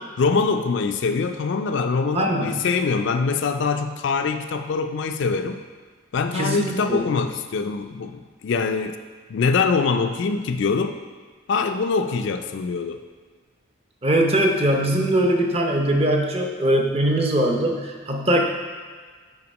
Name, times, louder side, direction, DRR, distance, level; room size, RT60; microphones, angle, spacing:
voice 1, 0.2-5.6 6.1-8.9 9.3-11.0 11.5-13.0, left 4 dB, 60° left, 7 dB, 0.3 m, -23 dB
voice 2, 2.1-2.6 6.3-7.1 14.0-18.4, right 1 dB, 30° right, 2 dB, 0.6 m, -21 dB
5.8 x 4.1 x 5.3 m, 1.5 s
head